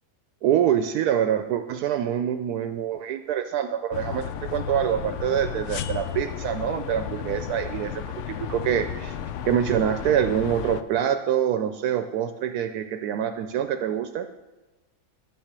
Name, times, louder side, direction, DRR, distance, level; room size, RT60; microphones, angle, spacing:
voice 1, 0.4-9.2 9.4-14.3, right 9 dB, 80° right, 8 dB, 1.1 m, -25 dB
sound 1, 3.9-10.8, left 9 dB, 65° left, 0.7 m, -33 dB
10.5 x 6.1 x 6.6 m, 1.1 s
omnidirectional pair, 1.7 m